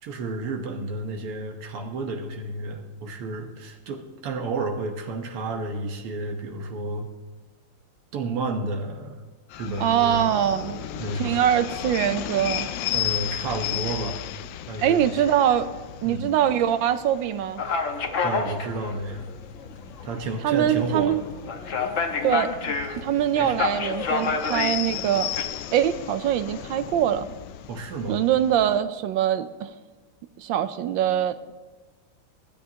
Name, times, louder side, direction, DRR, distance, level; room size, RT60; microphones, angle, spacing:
voice 1, 0.0-7.1 8.1-9.2 9.6-10.5 11.0-11.4 12.9-14.2 14.7-15.0 16.0-16.3 18.2-19.3 20.0-21.2 23.4-23.5 27.7-28.3, right 2 dB, 90° right, 3 dB, 2.1 m, -31 dB
sound 1, 9.5-28.8, left 12 dB, 75° left, 1.1 m, -35 dB
voice 2, 9.8-10.8 11.2-12.7 14.8-15.7 16.0-17.6 20.4-21.2 22.2-22.5 23.0-25.3 25.7-27.3 28.1-29.7 30.4-31.5, right 10 dB, 70° right, 11 dB, 1.2 m, -23 dB
sound 2, 17.6-25.4, left 5 dB, 50° left, 1.0 m, -29 dB
24.5 x 10.5 x 2.8 m, 1.2 s
omnidirectional pair, 2.4 m